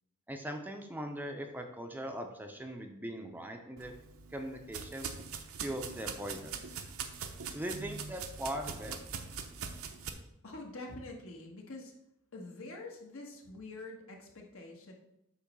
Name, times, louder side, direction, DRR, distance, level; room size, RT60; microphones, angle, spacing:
voice 1, 0.3-3.9 4.3-5.1 5.6-6.6 7.5-9.0, equal, 10° right, 4 dB, 0.6 m, -40 dB
sound 1, 3.8-10.1, right 6 dB, 70° right, 0.7 m, -42 dB
voice 2, 10.4-11.9 12.3-14.9, left 2 dB, 65° left, 0 dB, 1.4 m, -46 dB
8.3 x 3.1 x 6.0 m, 0.82 s
head